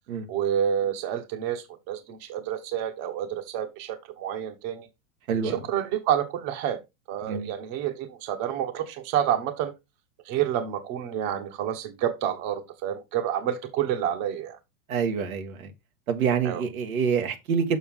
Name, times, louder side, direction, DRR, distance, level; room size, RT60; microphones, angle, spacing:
voice 1, 0.3-4.9 5.4-6.8 7.1-9.7 10.2-14.6 16.4-16.6, right 10 dB, 45° right, 1.4 m, -29 dB
voice 2, 14.9-15.7 16.1-17.8, right 6 dB, 85° right, 1.8 m, -26 dB
7.0 x 5.9 x 3.6 m
supercardioid pair, 130°, 41 cm